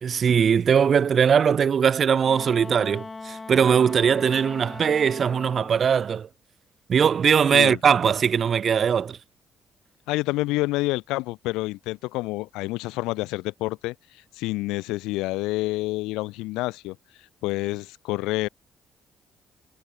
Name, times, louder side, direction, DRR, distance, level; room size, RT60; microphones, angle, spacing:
voice 1, 0.0-6.3 6.9-9.2, right 7 dB, 55° right, 0.4 m, -20 dB
Wind instrument woodwind instrument, 2.2-5.9, left 3 dB, 30° left, 4.0 m, -39 dB
voice 2, 10.1-13.9 14.4-17.0 17.4-18.5, left 20 dB, 85° left, 0.7 m, -28 dB
supercardioid pair, 55°, 0 cm